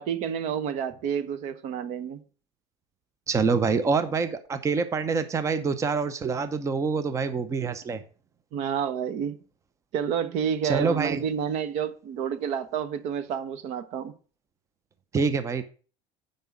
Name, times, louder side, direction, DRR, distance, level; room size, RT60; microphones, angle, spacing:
voice 1, 0.0-2.2 8.5-9.4 9.9-14.1, right 8 dB, 65° right, 1.0 m, -29 dB
voice 2, 3.3-8.0 10.6-11.2 15.1-15.6, right 5 dB, 25° right, 0.7 m, -26 dB
7.4 x 5.4 x 7.2 m
supercardioid pair, 120°, 13 cm